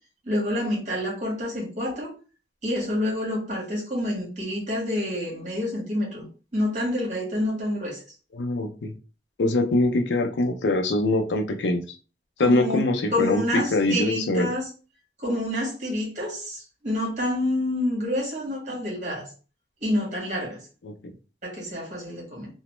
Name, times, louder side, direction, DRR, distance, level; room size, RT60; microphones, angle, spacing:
voice 1, 0.2-2.1 2.6-6.2 6.5-8.0 12.4-12.8 13.1-14.6 15.2-19.3 19.8-20.6 21.4-22.5, left 1 dB, 45° right, -2 dB, 1.4 m, -28 dB
voice 2, 8.3-8.9 9.4-11.8 12.4-14.5 20.8-20.9, left 2 dB, 85° left, 5 dB, 0.5 m, -23 dB
2.9 x 2.0 x 3.1 m, 0.34 s
head